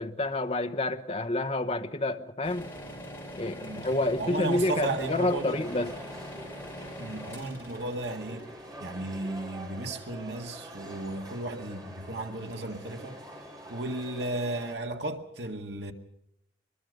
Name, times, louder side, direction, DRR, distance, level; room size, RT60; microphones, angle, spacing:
voice 1, 0.0-2.7 3.4-5.9, left 2 dB, 35° left, 0.9 m, -29 dB
sound 1, 2.4-9.3, left 1 dB, 10° left, 4.0 m, -43 dB
voice 2, 4.2-5.6 7.0-8.5 8.8-13.2 13.7-15.9, right 2 dB, 65° right, 2.0 m, -34 dB
sound 2, 4.5-14.7, right 1 dB, 20° right, 4.2 m, -46 dB
24.0 x 22.5 x 5.2 m
head